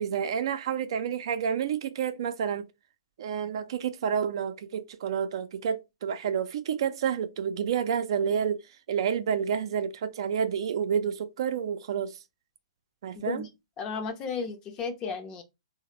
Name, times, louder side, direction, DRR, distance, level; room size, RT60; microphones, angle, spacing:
voice 1, 0.0-2.7 3.2-8.6 8.9-12.2 13.0-13.4, right 7 dB, 60° right, 0.4 m, -29 dB
voice 2, 13.1-13.5 13.8-15.4, left 5 dB, 25° left, 0.6 m, -34 dB
3.1 x 2.1 x 2.9 m
hypercardioid pair, 130°, 3 cm